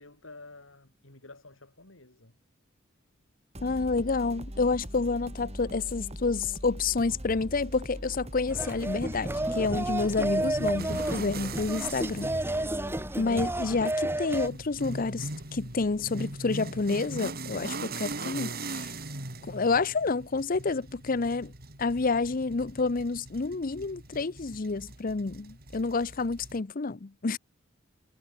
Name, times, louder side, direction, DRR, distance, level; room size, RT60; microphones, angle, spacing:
voice 1, 0.0-2.4 12.5-13.2, left 2 dB, 85° left, 6.3 m, -51 dB
sound 1, 3.5-16.9, equal, 30° right, 6.7 m, -42 dB
voice 2, 3.6-12.3 13.2-18.9 19.5-21.5 21.8-27.4, left 4 dB, 45° left, 0.7 m, -29 dB
sound 2, 8.5-14.5, right 1 dB, 10° right, 2.1 m, -31 dB
sound 3, 9.3-26.6, right 2 dB, 50° right, 6.0 m, -41 dB
head